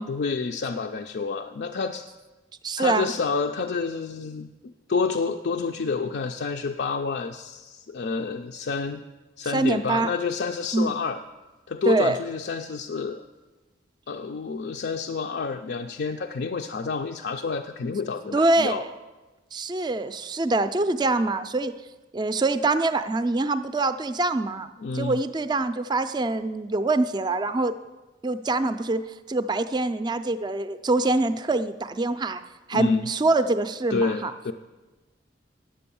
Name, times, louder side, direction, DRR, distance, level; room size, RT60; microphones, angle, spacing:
voice 1, 0.0-2.1 2.8-9.0 9.4-11.2 11.7-13.2 14.1-18.8 24.8-25.2 32.7-33.1 33.9-34.5, left 4 dB, 60° left, 4 dB, 0.4 m, -29 dB
voice 2, 2.6-3.1 9.5-10.1 10.7-11.0 11.9-12.2 18.3-18.9 19.5-21.7 22.1-27.7 28.2-29.0 29.3-32.4 32.7-34.3, right 2 dB, 25° right, 11 dB, 0.4 m, -24 dB
9.9 x 7.8 x 6.9 m, 1.2 s
head